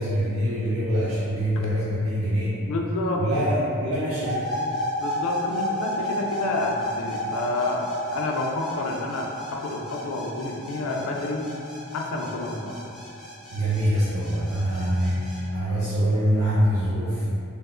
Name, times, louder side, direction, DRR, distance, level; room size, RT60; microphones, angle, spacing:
voice 1, 0.0-2.6 3.2-4.5 13.5-17.2, equal, 80° right, -10 dB, 0.5 m, -24 dB
voice 2, 2.7-3.2 5.0-11.5 11.9-12.8, left 2 dB, 80° left, 0 dB, 0.4 m, -29 dB
sound 1, 4.2-15.4, left 1 dB, ahead, 0.5 m, -32 dB
3.2 x 2.0 x 2.4 m, 2.5 s
head